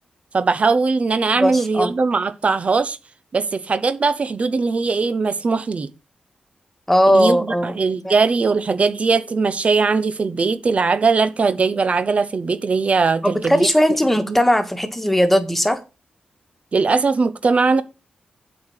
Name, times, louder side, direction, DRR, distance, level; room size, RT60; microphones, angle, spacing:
voice 1, 0.3-3.0 3.3-5.9 7.1-13.7 14.3-14.4 16.7-17.8, right 4 dB, 45° right, 0.9 m, -20 dB
voice 2, 1.4-1.9 6.9-7.7 8.0-8.1 13.2-15.8, equal, 5° left, 1.8 m, -18 dB
7.9 x 5.0 x 7.4 m
cardioid pair, 85°, 3 cm